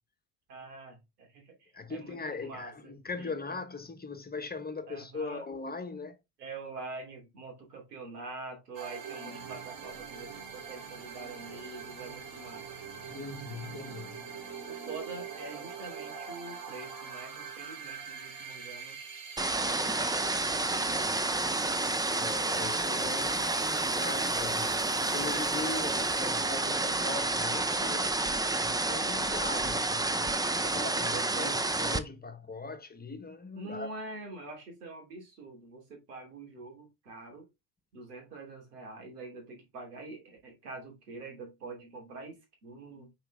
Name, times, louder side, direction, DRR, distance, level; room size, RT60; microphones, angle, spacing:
voice 1, 0.5-3.3 4.9-5.5 6.4-12.7 14.7-19.0 19.5-21.3 30.6-31.7 33.5-37.5 37.9-43.1, right 3 dB, 90° right, 2.8 m, -45 dB
voice 2, 1.7-6.2 13.1-14.3 22.2-24.8 25.1-28.1 28.5-30.3 30.6-33.9, left 4 dB, 20° left, 1.3 m, -40 dB
sound 1, 8.7-27.2, right 6 dB, 50° right, 3.1 m, -45 dB
sound 2, 19.4-32.0, right 2 dB, 10° right, 0.7 m, -30 dB
5.9 x 4.8 x 3.5 m
hypercardioid pair, 65°, 46 cm